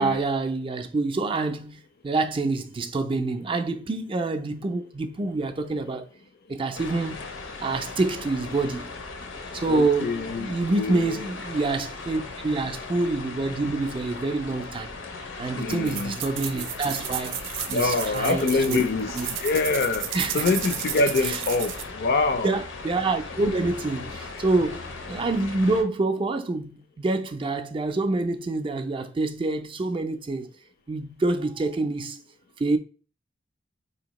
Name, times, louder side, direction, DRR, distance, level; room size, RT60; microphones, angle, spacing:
voice 1, 0.0-6.1 6.5-7.3 7.6-8.9 9.5-14.9 15.4-17.4 17.7-18.8 19.1-19.3 20.1-20.6 21.2-21.4 22.4-30.5 30.9-32.2 32.6-32.8, right 3 dB, 25° right, 0.4 m, -27 dB
sound 1, 6.7-25.8, left 3 dB, 85° left, 0.8 m, -38 dB
voice 2, 9.6-11.2 15.5-16.2 17.7-22.5, left 3 dB, 55° left, 0.4 m, -25 dB
sound 2, 15.7-21.8, right 9 dB, 90° right, 0.5 m, -33 dB
4.2 x 2.8 x 2.9 m
head